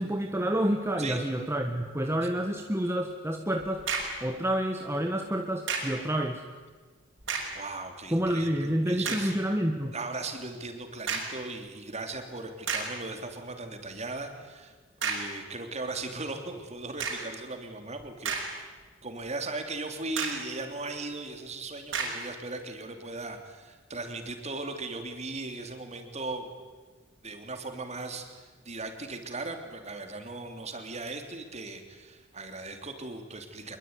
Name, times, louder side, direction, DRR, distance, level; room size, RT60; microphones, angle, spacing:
voice 1, 0.0-3.8 4.2-6.4 8.1-9.9, right 1 dB, 15° right, 3 dB, 1.6 m, -29 dB
sound 1, 3.8-4.3 5.7-6.1 7.2-7.7 8.3-8.4 9.0-9.4 11.1-11.5 12.1-12.2 12.7-13.0 15.0-15.4 17.0-17.4 18.0-18.8 19.2-19.3 20.2-20.5 21.9-22.3, right 5 dB, 70° right, 6.9 m, -32 dB
voice 2, 7.5-9.3 9.9-14.7 15.0-18.4 19.0-26.5 27.2-33.8, right 3 dB, 35° right, 6 dB, 3.4 m, -38 dB
26.0 x 22.5 x 9.7 m, 1.4 s
head